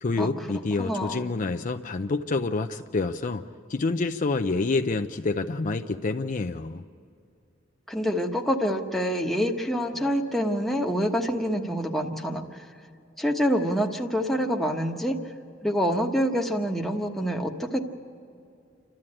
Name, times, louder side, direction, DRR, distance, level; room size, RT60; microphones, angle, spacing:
voice 1, 0.0-3.4 3.7-6.8, left 3 dB, 40° left, 7 dB, 0.5 m, -27 dB
voice 2, 0.8-1.3 7.9-12.7 13.2-15.3 15.6-17.8, equal, ahead, 1 dB, 1.2 m, -26 dB
28.5 x 12.5 x 8.8 m, 2.5 s
head